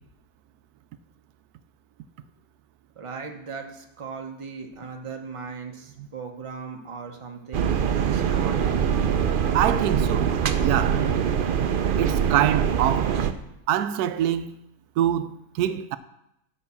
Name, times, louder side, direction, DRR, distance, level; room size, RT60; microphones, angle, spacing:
voice 1, 3.0-8.8, right 5 dB, 25° right, 0.9 m, -38 dB
sound 1, 7.5-13.3, right 8 dB, 65° right, 0.5 m, -23 dB
voice 2, 9.5-11.1 12.0-13.2 13.7-14.5 15.0-16.0, right 10 dB, 85° right, 1.1 m, -25 dB
9.7 x 5.5 x 6.9 m
omnidirectional pair, 1.6 m